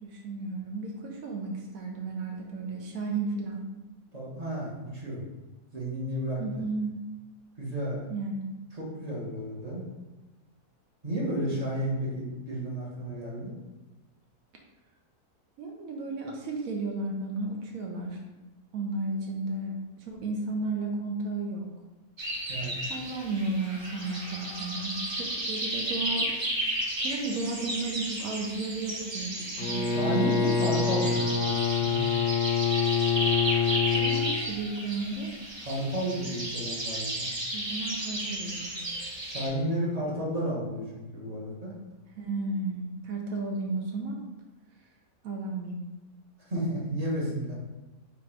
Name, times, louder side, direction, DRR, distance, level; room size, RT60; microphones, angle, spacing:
voice 1, 0.0-3.6 6.4-7.0 8.1-8.4 11.3-11.4 15.6-18.2 18.7-21.7 22.9-26.4 27.0-30.5 33.9-35.3 37.5-38.7 42.2-44.2 45.2-45.8, right 3 dB, 70° right, 1 dB, 1.0 m, -33 dB
voice 2, 4.1-5.2 5.7-6.4 7.6-8.1 8.7-9.8 11.0-13.5 22.5-22.8 29.8-32.0 35.6-37.3 39.2-41.7 46.5-47.6, equal, 30° right, -5 dB, 0.9 m, -32 dB
sound 1, 22.2-39.5, right 1 dB, 45° right, 0.3 m, -33 dB
Bowed string instrument, 29.6-34.4, left 6 dB, 70° left, 1.0 m, -26 dB
4.2 x 2.4 x 4.4 m, 1.1 s
omnidirectional pair, 1.7 m